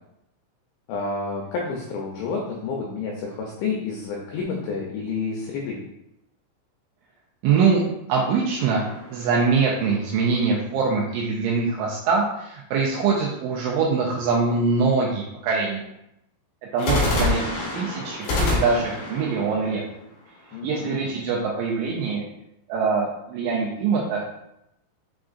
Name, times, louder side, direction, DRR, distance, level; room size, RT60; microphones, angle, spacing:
voice 1, 0.9-5.8 20.5-21.0, left 4 dB, 90° left, -1 dB, 2.5 m, -29 dB
voice 2, 7.4-7.8 8.1-8.8 9.1-15.8 16.7-17.4 17.7-19.8 20.6-22.2 22.7-24.2, right 5 dB, 85° right, -3 dB, 2.7 m, -23 dB
sound 1, 8.6-10.0 16.8-20.7, left 3 dB, 60° left, 2.8 m, -27 dB
7.4 x 2.5 x 2.4 m, 0.83 s
omnidirectional pair, 5.8 m